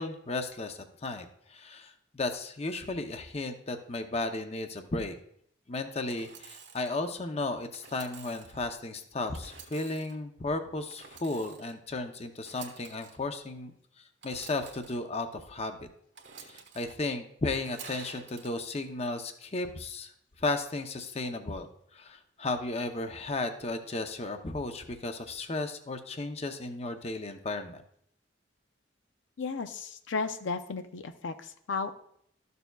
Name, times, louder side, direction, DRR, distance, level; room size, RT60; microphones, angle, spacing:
voice 1, 0.0-5.1 5.7-13.7 14.2-15.8 16.5-20.1 20.4-21.7 21.9-27.8, left 2 dB, 30° left, 7 dB, 0.6 m, -34 dB
Engine / Sawing, 6.1-6.9 7.7-8.6 9.3-10.2 10.9-11.8 12.4-13.2 14.2-15.0 16.2-16.9 17.5-18.5, right 6 dB, 65° right, 1.3 m, -49 dB
voice 2, 29.4-31.9, left 4 dB, 75° left, 9 dB, 0.5 m, -34 dB
13.0 x 6.8 x 2.3 m, 0.69 s
head